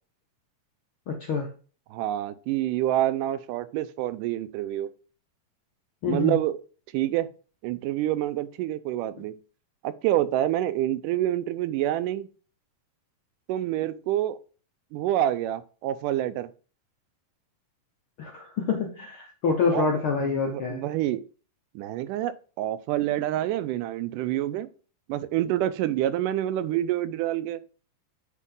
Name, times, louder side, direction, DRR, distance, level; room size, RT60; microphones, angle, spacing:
voice 1, 1.1-1.5 6.0-6.4 18.2-20.8, left 5 dB, 70° left, 1.3 m, -27 dB
voice 2, 1.9-4.9 6.1-6.6 6.9-7.3 7.6-9.4 9.8-12.3 13.5-14.4 14.9-16.5 19.7-19.9 20.1-21.2 21.8-24.7 25.1-27.6, right 13 dB, 90° right, 2.2 m, -27 dB
8.4 x 4.6 x 3.8 m
omnidirectional pair, 3.7 m